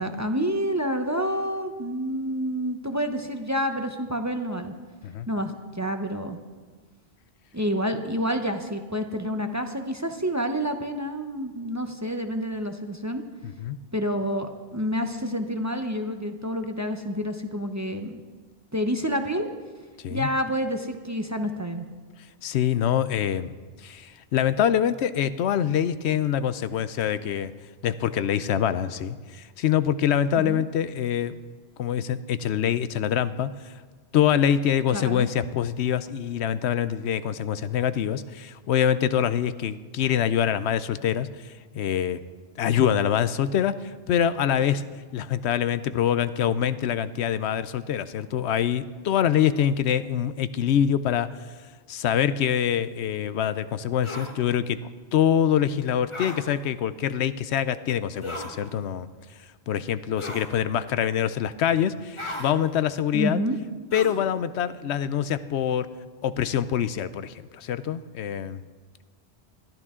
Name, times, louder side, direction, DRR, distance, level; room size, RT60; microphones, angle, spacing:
voice 1, 0.0-4.7 5.3-6.4 7.5-13.2 13.9-18.2 18.7-19.5 20.1-21.8 30.4-30.6 34.9-35.3 63.1-63.6, equal, 20° right, 6 dB, 0.8 m, -28 dB
voice 2, 13.4-13.8 20.0-20.3 22.4-23.5 23.8-27.5 27.8-31.3 31.8-33.7 34.1-42.2 42.6-44.8 45.1-51.3 51.9-54.8 55.1-59.1 59.7-63.4 63.9-65.9 66.2-68.6, left 9 dB, 85° left, 14 dB, 0.9 m, -25 dB
sound 1, 54.0-54.3 56.1-56.4 58.2-58.5 60.2-60.5 62.2-62.5 63.9-64.2, left 1 dB, 25° left, 1.7 m, -35 dB
21.0 x 13.5 x 3.7 m, 1.4 s
omnidirectional pair, 1.1 m